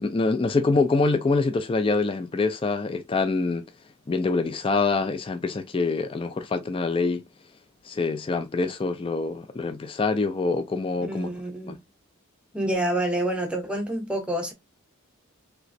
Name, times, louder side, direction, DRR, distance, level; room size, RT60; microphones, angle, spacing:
voice 1, 0.0-3.6 4.1-7.2 7.8-11.3 11.7-11.8, left 3 dB, 25° left, 0.3 m, -25 dB
voice 2, 11.0-11.8 12.5-14.5, right 1 dB, 5° right, 0.7 m, -28 dB
3.2 x 2.9 x 2.6 m
head